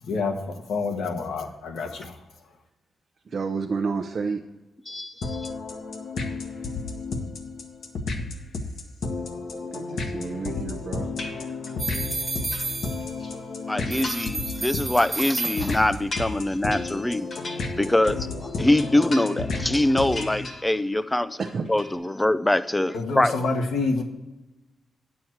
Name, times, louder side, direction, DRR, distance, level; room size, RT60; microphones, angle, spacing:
voice 1, 0.7-2.1 22.9-24.0, left 3 dB, 90° left, 4 dB, 1.4 m, -27 dB
voice 2, 3.3-4.4 9.7-11.1 21.4-21.7, right 4 dB, 45° right, 3 dB, 0.7 m, -30 dB
voice 3, 4.9-5.5 13.7-17.3 17.8-21.4 21.7-23.3, left 1 dB, 10° left, 14 dB, 0.4 m, -23 dB
sound 1, 5.2-20.4, left 3 dB, 65° left, 1.2 m, -32 dB
sound 2, 11.2-11.9 12.2-13.3 13.8-14.5 14.8-18.3 18.6-19.7 20.0-21.1 21.3-22.0, left 2 dB, 40° left, 1.4 m, -39 dB
sound 3, 11.8-13.4 13.9-16.1, right 3 dB, 20° right, 1.4 m, -32 dB
9.3 x 7.2 x 4.5 m, 1.0 s
wide cardioid pair, 145°, 0 cm